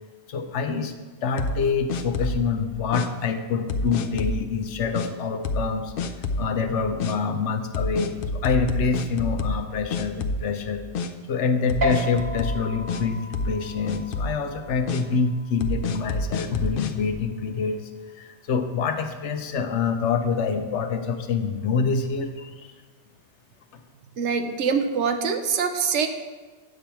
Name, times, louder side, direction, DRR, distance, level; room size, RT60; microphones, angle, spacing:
voice 1, 0.3-0.9 1.2-5.9 6.4-10.9 11.3-17.9 18.1-22.7, left 5 dB, 85° left, 7 dB, 1.1 m, -26 dB
sound 1, 1.4-2.5 2.9-3.1 3.7-4.4 4.9-5.1 5.4-5.7 6.0-6.5 7.0-7.1 7.7-9.7 9.9-10.6 10.9-11.1 11.7-13.0 13.3-13.6 13.9-14.4 14.9-15.0 15.6-16.9, left 2 dB, 60° left, 0.7 m, -28 dB
sound 2, 11.8-18.6, left 1 dB, 50° right, 1.1 m, -35 dB
voice 2, 24.2-26.1, right 6 dB, 90° right, 7 dB, 1.1 m, -24 dB
9.2 x 7.0 x 4.4 m, 1.4 s
omnidirectional pair, 1.2 m